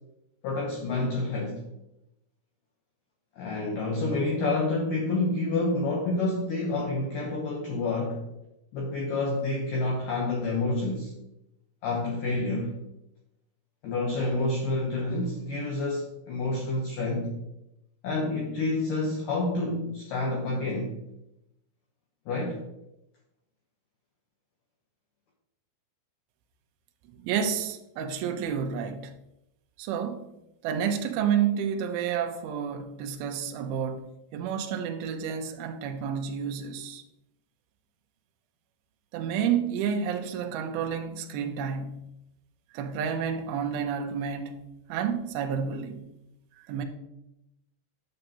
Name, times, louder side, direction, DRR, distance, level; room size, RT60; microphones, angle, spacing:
voice 1, 0.4-1.6 3.4-8.2 8.7-11.1 11.8-12.8 13.8-17.4 18.0-20.9 22.3-22.6, left 2 dB, 75° left, 2.0 m, -28 dB
voice 2, 27.2-29.1 29.8-30.2 30.6-34.1 34.3-37.0 39.1-42.1 42.7-44.6 44.9-46.1 46.7-46.8, right 7 dB, 90° right, 2.1 m, -30 dB
9.4 x 6.5 x 2.9 m
omnidirectional pair, 5.2 m